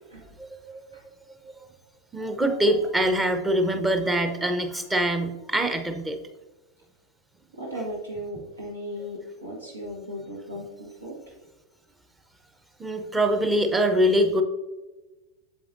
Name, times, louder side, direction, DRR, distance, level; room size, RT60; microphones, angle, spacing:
voice 1, 0.4-1.0 1.4-1.6 2.1-6.2 12.8-14.4, right 1 dB, 10° right, 6 dB, 0.8 m, -24 dB
voice 2, 7.5-11.2, equal, 75° right, -2 dB, 1.5 m, -36 dB
8.4 x 7.1 x 2.6 m, 1.1 s
figure-of-eight pair, 90°, 0 cm